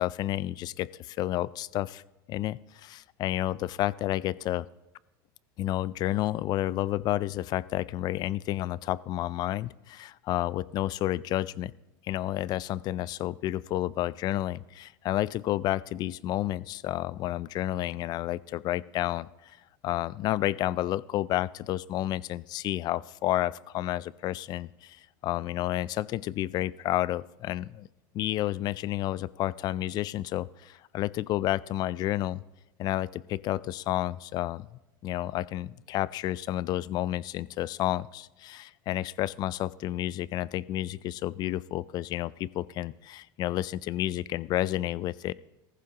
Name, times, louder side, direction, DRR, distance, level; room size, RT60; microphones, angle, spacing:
voice 1, 0.0-2.0 2.3-4.7 5.6-11.7 12.0-19.6 19.8-27.9 28.1-32.4 32.8-34.7 35.0-45.3, left 14 dB, 40° left, 21 dB, 0.3 m, -30 dB
15.0 x 15.0 x 2.9 m, 0.97 s
supercardioid pair, 130°, 11 cm